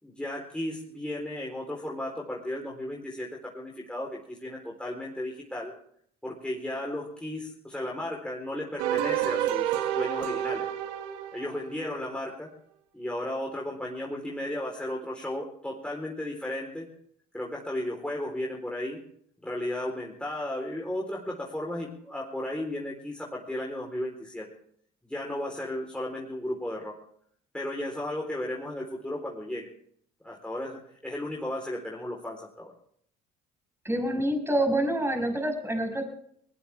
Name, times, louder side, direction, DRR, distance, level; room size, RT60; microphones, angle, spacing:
voice 1, 0.0-5.7 6.2-10.7 11.3-12.5 12.9-16.9 17.3-19.0 19.4-24.5 25.0-26.9 27.5-29.7 30.2-32.7, left 1 dB, 5° left, -2 dB, 4.1 m, -34 dB
sound 1, 8.8-12.0, right 11 dB, 85° right, 1.3 m, -29 dB
voice 2, 33.8-36.0, right 1 dB, 10° right, 4 dB, 5.6 m, -27 dB
20.0 x 19.5 x 3.6 m, 0.64 s
hypercardioid pair, 65°, 20 cm